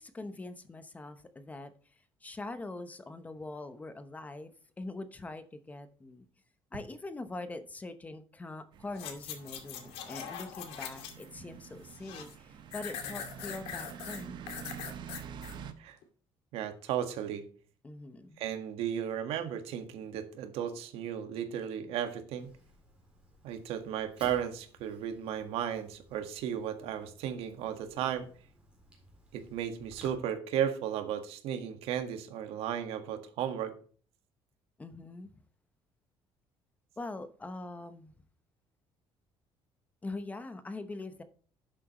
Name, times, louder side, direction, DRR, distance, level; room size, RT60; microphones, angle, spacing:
voice 1, 0.0-1.7 2.2-6.2 6.7-14.4 17.8-18.4 34.8-35.4 37.0-38.1 40.0-41.2, left 2 dB, 15° left, 0.9 m, -43 dB
sound 1, 8.7-15.7, right 8 dB, 50° right, 1.1 m, -47 dB
sound 2, 8.9-11.3 11.6-12.4 12.7-15.6 16.0-16.1, left 8 dB, 85° left, 2.2 m, -42 dB
voice 2, 16.5-17.5 18.4-22.5 23.4-28.3 29.3-33.7, right 9 dB, 85° right, 1.6 m, -35 dB
Fire, 22.4-30.1, right 1 dB, 10° right, 4.0 m, -57 dB
11.5 x 7.6 x 3.0 m
cardioid pair, 160°, 10 cm